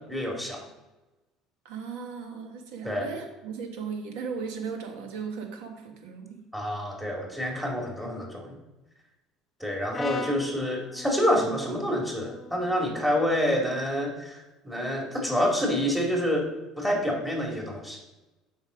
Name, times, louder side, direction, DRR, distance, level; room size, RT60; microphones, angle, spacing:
voice 1, 0.1-0.6 2.8-3.1 6.5-8.6 9.6-16.5 16.8-18.0, equal, 5° right, 0 dB, 2.3 m, -27 dB
voice 2, 1.6-6.5, right 5 dB, 85° right, 4 dB, 1.5 m, -37 dB
Brass instrument, 9.9-14.2, left 4 dB, 25° left, 0.7 m, -41 dB
7.0 x 5.3 x 5.0 m, 1.1 s
supercardioid pair, 110°, 0 cm